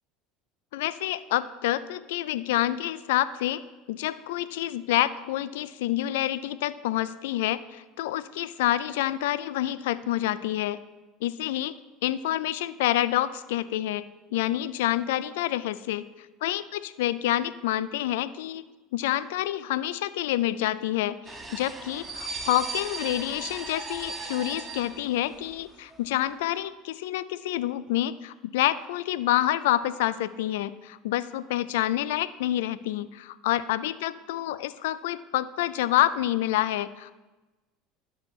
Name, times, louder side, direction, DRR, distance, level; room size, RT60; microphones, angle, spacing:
voice 1, 0.7-3.6 3.9-10.8 11.2-11.8 12.0-14.0 14.3-16.0 16.4-18.7 18.9-37.1, left 14 dB, 75° left, 15 dB, 0.4 m, -28 dB
sound 1, 21.3-25.6 25.9-26.1, right 3 dB, 15° right, 1.3 m, -37 dB
13.5 x 6.2 x 3.1 m, 1.2 s
hypercardioid pair, 80°, 0 cm